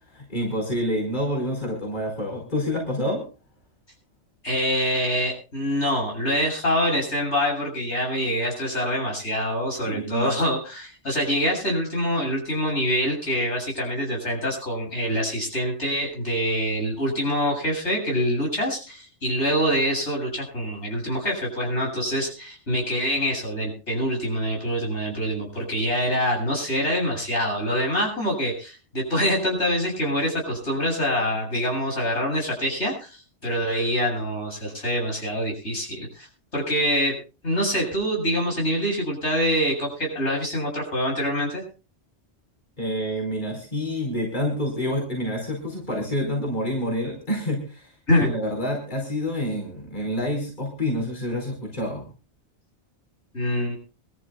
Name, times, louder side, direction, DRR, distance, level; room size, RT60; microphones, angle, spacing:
voice 1, 0.1-3.2 9.8-10.3 42.8-47.9 48.2-52.1, equal, 45° left, 0 dB, 4.8 m, -28 dB
voice 2, 4.4-37.1 37.4-41.6 48.1-48.3 53.3-53.8, equal, 80° left, -1 dB, 8.1 m, -25 dB
25.5 x 13.5 x 2.3 m, 0.34 s
omnidirectional pair, 1.2 m